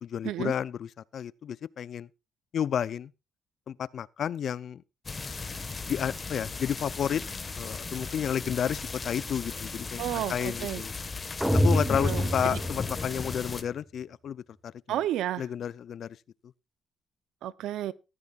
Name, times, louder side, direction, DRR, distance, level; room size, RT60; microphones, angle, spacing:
voice 1, 0.0-2.1 2.5-3.1 3.7-4.8 5.9-7.2 7.6-10.9 11.6-15.0 15.4-16.2, left 8 dB, 60° left, 0.5 m, -31 dB
sound 1, 5.0-13.6, left 4 dB, 30° left, 1.5 m, -37 dB
voice 2, 10.0-10.8 11.9-12.6 14.9-15.4 17.4-17.9, right 12 dB, 85° right, 0.7 m, -32 dB
sound 2, 11.4-13.5, equal, 5° right, 1.5 m, -27 dB
15.0 x 13.5 x 2.5 m
cardioid pair, 90°, 0 cm